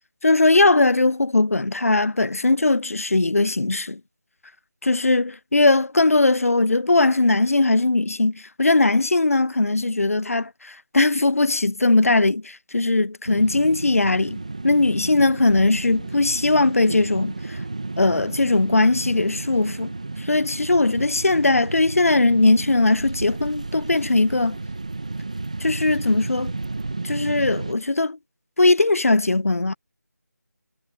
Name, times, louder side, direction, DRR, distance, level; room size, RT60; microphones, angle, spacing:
voice 1, 0.2-4.0 4.8-17.6 18.0-19.9 20.2-24.6 25.6-26.5 27.0-28.2 28.6-29.7, left 2 dB, 55° left, 0.5 m, -19 dB
sound 1, 13.3-27.7, right 3 dB, 25° right, 1.1 m, -32 dB
figure-of-eight pair, 180°, 9 cm